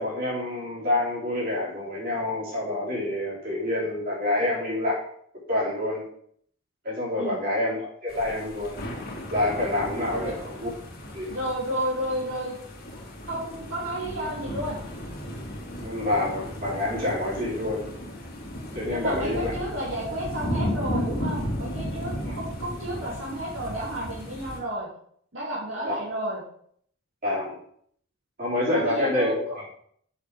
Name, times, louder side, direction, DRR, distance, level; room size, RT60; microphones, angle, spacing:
voice 1, 0.0-5.1 5.5-6.0 6.8-8.8 9.3-10.7 11.1-11.3 15.8-17.9 18.7-19.5 22.3-22.4 25.9-26.0 27.2-27.6 28.4-29.6, left 1 dB, 45° right, -6 dB, 4.3 m, -27 dB
sound 1, 8.1-24.6, equal, 50° left, 2.4 m, -35 dB
voice 2, 11.3-12.6 13.3-14.8 18.9-24.9 25.3-26.4 28.7-29.3, right 1 dB, 75° right, -7 dB, 2.8 m, -31 dB
7.2 x 7.0 x 5.0 m, 0.63 s
head